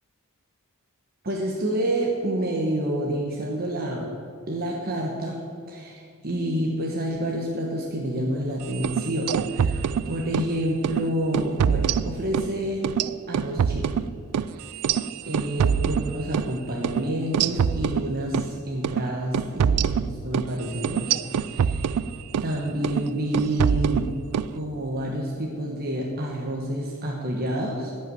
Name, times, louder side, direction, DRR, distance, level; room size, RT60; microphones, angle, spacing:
voice 1, 1.2-4.1 4.5-5.4 5.7-12.9 13.3-13.9 14.5-14.8 15.2-21.2 21.5-21.9 22.4-24.1 24.5-27.9, right 1 dB, 45° right, -1 dB, 1.2 m, -28 dB
sound 1, 8.7-10.5 10.8-11.0 11.3-12.5 12.8-16.5 16.8-17.0 17.3-18.5 18.8-19.0 19.3-22.5 22.8-23.1 23.3-24.5, right 7 dB, 85° right, 0.4 m, -25 dB
12.0 x 5.7 x 9.1 m, 2.3 s
head